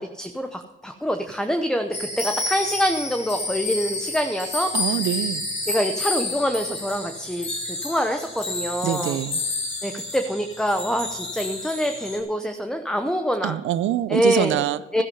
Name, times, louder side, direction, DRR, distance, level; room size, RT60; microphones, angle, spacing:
voice 1, 0.0-4.7 5.7-9.2 9.8-13.6 14.1-14.6 14.9-15.0, equal, 5° left, 6 dB, 0.8 m, -25 dB
sound 1, 1.9-12.2, left 2 dB, 30° left, 3.8 m, -30 dB
voice 2, 4.7-5.4 8.8-9.4 13.4-15.0, right 12 dB, 75° right, 16 dB, 0.6 m, -25 dB
13.0 x 10.5 x 5.4 m, 1.0 s
cardioid pair, 90°, 20 cm